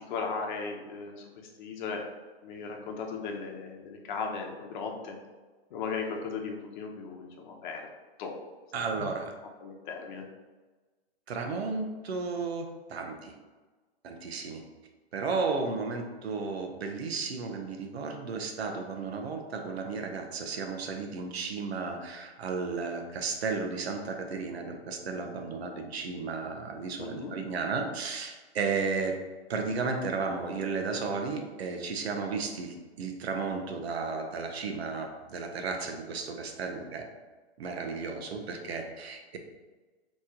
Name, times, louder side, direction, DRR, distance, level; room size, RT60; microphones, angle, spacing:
voice 1, 0.0-2.0 2.4-5.2 5.7-7.8 8.2-8.4 9.6-10.2 27.0-27.3, left 5 dB, 45° left, 1 dB, 0.9 m, -37 dB
voice 2, 8.7-9.3 11.3-13.3 14.0-14.6 15.1-29.2 29.5-37.1 37.6-39.4, right 4 dB, 75° right, 4 dB, 0.9 m, -34 dB
4.2 x 3.1 x 3.7 m, 1.3 s
hypercardioid pair, 135°, 32 cm